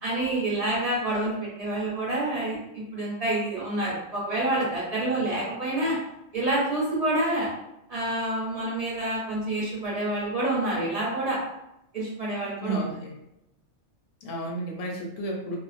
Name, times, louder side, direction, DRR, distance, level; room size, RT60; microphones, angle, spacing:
voice 1, 0.0-6.0 6.3-7.5 7.9-11.4 11.9-12.9, right 1 dB, 35° right, -7 dB, 0.9 m, -28 dB
voice 2, 12.4-13.1 14.2-15.6, right 2 dB, 80° left, 0 dB, 0.9 m, -32 dB
2.5 x 2.1 x 2.5 m, 0.85 s
omnidirectional pair, 1.3 m